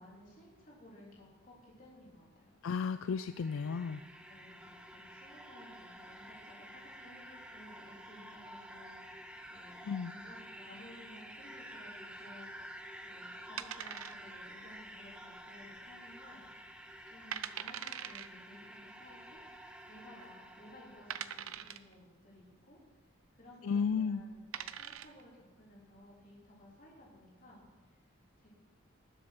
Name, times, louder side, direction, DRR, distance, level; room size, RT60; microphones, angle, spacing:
voice 1, 0.0-2.6 4.3-19.4 19.9-28.5, left 1 dB, 40° left, -4 dB, 3.8 m, -57 dB
voice 2, 2.6-4.0 9.8-10.1 23.6-24.2, left 5 dB, 70° left, 12 dB, 0.4 m, -33 dB
sound 1, 3.0-21.6, equal, 5° right, 0.8 m, -51 dB
sound 2, 13.6-14.5 14.8-14.9 15.5-15.9 16.3-16.4 17.0-17.1 17.3-18.3 19.4-19.5 20.1-20.2 21.1-21.9 23.8-23.9 24.3-25.2, right 9 dB, 75° right, 0.6 m, -42 dB
19.5 x 7.7 x 6.1 m, 1.3 s
head